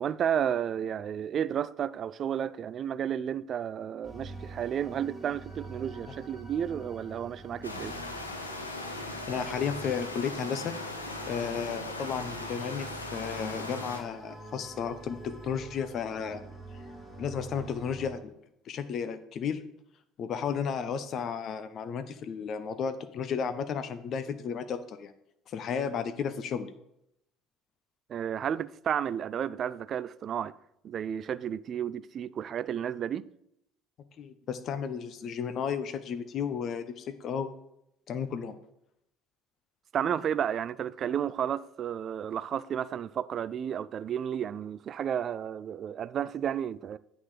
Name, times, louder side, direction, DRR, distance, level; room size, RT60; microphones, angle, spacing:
voice 1, 0.0-8.0 28.1-30.5 30.8-33.3 39.9-47.0, right 9 dB, 45° right, 0.3 m, -32 dB
sound 1, 4.0-18.1, right 2 dB, 10° left, 2.7 m, -46 dB
sound 2, 7.6-14.0, left 2 dB, 90° left, 0.9 m, -38 dB
voice 2, 9.3-10.7 11.3-16.4 17.2-18.3 18.7-19.6 20.2-25.1 25.5-26.7 34.2-37.5 38.1-38.6, left 7 dB, 45° left, 0.6 m, -33 dB
8.5 x 3.9 x 6.6 m
figure-of-eight pair, 60°, 0 cm